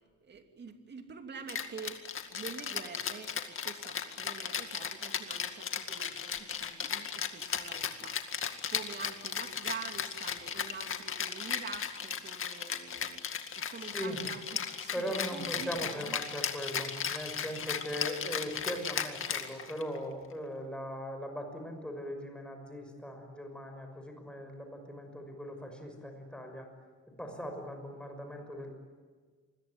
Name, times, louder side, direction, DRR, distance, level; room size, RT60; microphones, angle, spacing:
voice 1, 0.2-2.0 2.3-13.2 13.5-16.2, right 5 dB, 35° right, 6 dB, 2.9 m, -46 dB
Rattle (instrument), 1.5-20.0, left 7 dB, 45° left, 2.2 m, -36 dB
voice 2, 13.8-14.2 14.9-26.7 27.2-28.7, equal, 5° left, 4 dB, 6.1 m, -39 dB
27.0 x 22.0 x 9.7 m, 1.5 s
cardioid pair, 140°, 30 cm